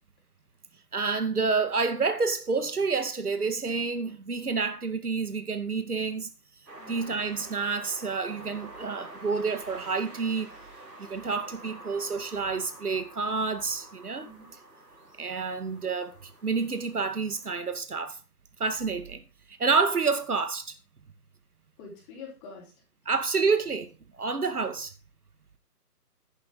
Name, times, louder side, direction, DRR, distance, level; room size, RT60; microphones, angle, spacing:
voice 1, 0.9-6.3 6.9-10.5 11.0-14.3 15.2-18.2 18.6-19.2 19.5-20.7 23.1-24.9, right 4 dB, 65° right, 2.2 m, -29 dB
sound 1, 6.7-17.7, right 2 dB, 85° right, 4.8 m, -48 dB
voice 2, 21.8-22.7, left 4 dB, 15° left, 3.8 m, -45 dB
11.0 x 9.7 x 3.9 m
figure-of-eight pair, 155°, 48 cm